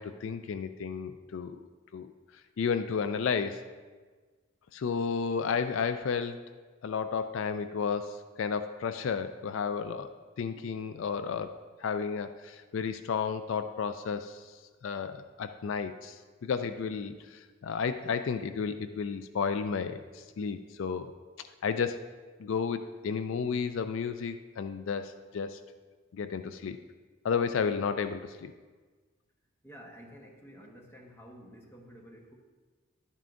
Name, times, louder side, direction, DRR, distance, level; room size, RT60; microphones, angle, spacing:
voice 1, 0.0-1.6 1.9-2.1 2.6-3.6 4.7-6.4 6.8-10.1 10.4-11.5 11.8-21.1 21.4-22.0 22.4-25.6 26.1-26.8 27.2-28.5, left 6 dB, 70° left, 10 dB, 0.4 m, -32 dB
voice 2, 29.6-32.3, equal, 10° left, 0 dB, 1.0 m, -51 dB
11.0 x 9.1 x 2.6 m, 1.4 s
head